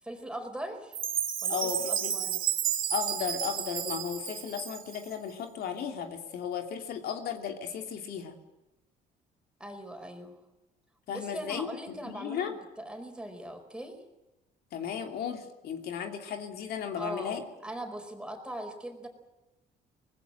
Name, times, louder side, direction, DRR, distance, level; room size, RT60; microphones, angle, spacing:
voice 1, 0.0-1.0 1.4-1.6 1.9-2.4 9.6-10.4 11.1-14.0 16.9-17.3 17.6-19.1, right 1 dB, 5° right, 5 dB, 4.7 m, -40 dB
Chime, 0.9-5.1, right 10 dB, 55° right, 2.1 m, -32 dB
voice 2, 1.5-2.1 2.9-8.4 11.1-11.7 12.0-12.5 14.7-17.4, left 7 dB, 65° left, 4 dB, 2.8 m, -35 dB
24.0 x 20.0 x 7.8 m, 0.99 s
cardioid pair, 110°, 17 cm